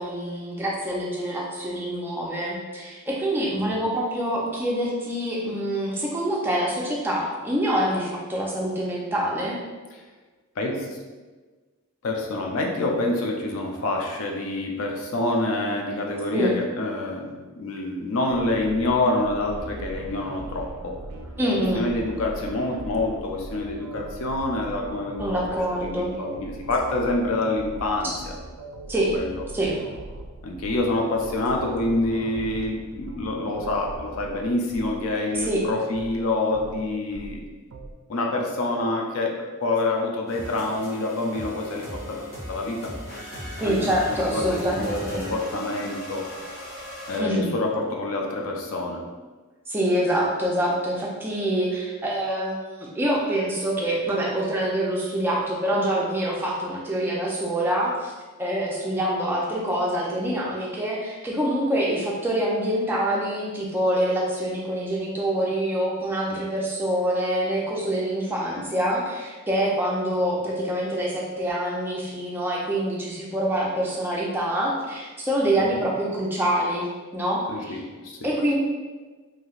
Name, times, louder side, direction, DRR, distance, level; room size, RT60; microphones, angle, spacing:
voice 1, 0.0-9.6 16.3-16.6 21.4-21.9 25.2-26.1 28.9-29.3 29.5-29.8 35.3-35.7 43.6-45.3 47.2-47.5 49.7-58.1 58.4-76.9 77.1-77.8 78.2-78.6, right 1 dB, 10° right, -4 dB, 0.4 m, -25 dB
voice 2, 10.6-11.0 12.0-21.0 21.7-25.4 26.0-28.3 29.1-29.4 30.4-37.4 38.1-42.9 43.6-46.3 47.1-49.0 75.7-75.8 77.5-78.2, left 2 dB, 70° left, 1 dB, 0.4 m, -27 dB
sound 1, 18.3-37.9, right 2 dB, 75° right, 0.3 m, -40 dB
sound 2, 40.3-47.2, equal, 45° left, 0.8 m, -37 dB
3.1 x 2.7 x 2.4 m, 1.3 s
head